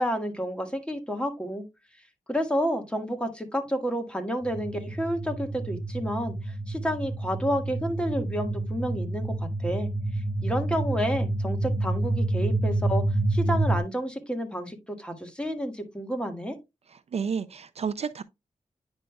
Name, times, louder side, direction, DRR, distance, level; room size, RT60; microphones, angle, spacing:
voice 1, 0.0-1.6 2.3-9.9 10.4-13.0 13.3-16.5, equal, 10° left, 1.6 m, -30 dB
sound 1, 4.4-13.8, right 2 dB, 35° right, 2.4 m, -28 dB
voice 2, 17.1-18.2, right 6 dB, 55° right, 0.4 m, -30 dB
9.6 x 5.3 x 2.3 m
wide cardioid pair, 90°, 13 cm